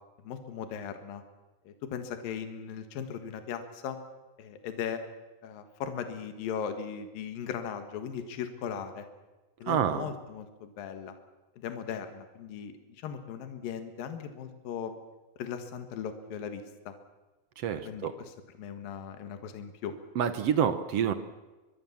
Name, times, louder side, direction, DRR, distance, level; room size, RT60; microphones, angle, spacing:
voice 1, 0.2-1.2 1.6-4.0 4.4-5.0 5.4-9.1 9.6-11.1 11.6-15.0 15.4-16.9 17.8-19.9, left 7 dB, 70° left, 8 dB, 3.3 m, -38 dB
voice 2, 9.7-10.1 17.6-18.1 20.1-21.1, right 8 dB, 70° right, 11 dB, 1.5 m, -27 dB
24.0 x 23.0 x 7.3 m, 1.1 s
omnidirectional pair, 4.2 m